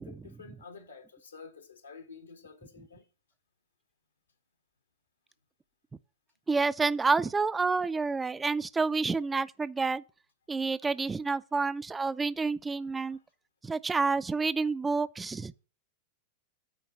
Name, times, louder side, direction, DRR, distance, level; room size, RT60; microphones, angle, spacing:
voice 1, 0.0-3.1 13.1-13.2, left 5 dB, 80° left, 1.6 m, -50 dB
voice 2, 6.5-10.0 10.5-13.2 13.6-15.5, right 4 dB, 15° right, 0.4 m, -29 dB
9.2 x 4.5 x 7.6 m
figure-of-eight pair, 90°, 0 cm